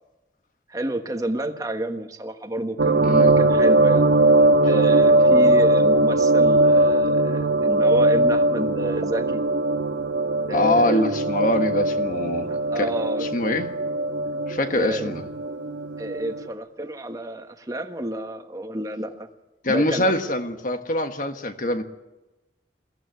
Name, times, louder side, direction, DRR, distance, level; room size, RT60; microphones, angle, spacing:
voice 1, 0.7-4.1 4.6-9.4 10.5-11.1 12.5-13.3 14.7-15.1 16.0-19.3 19.7-20.3, right 1 dB, 20° right, 6 dB, 1.4 m, -30 dB
sound 1, 2.8-16.5, right 2 dB, 80° right, 1.2 m, -20 dB
voice 2, 3.0-3.3 10.5-12.5 12.7-12.9 13.3-13.7 14.5-15.2 19.6-21.8, left 1 dB, 45° left, 7 dB, 1.5 m, -24 dB
22.5 x 15.5 x 9.4 m, 1.1 s
head